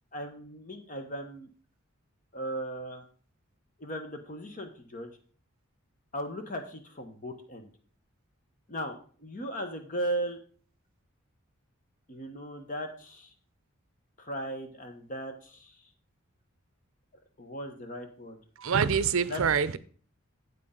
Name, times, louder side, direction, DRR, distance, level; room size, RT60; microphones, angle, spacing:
voice 1, 0.1-1.5 2.3-3.0 3.8-5.1 6.1-7.7 8.7-10.4 12.1-13.3 14.2-15.8 17.4-18.4 19.3-19.4, right 1 dB, 35° left, 1.0 m, -37 dB
voice 2, 18.6-19.8, right 6 dB, 70° right, 0.5 m, -25 dB
8.4 x 8.3 x 3.7 m
head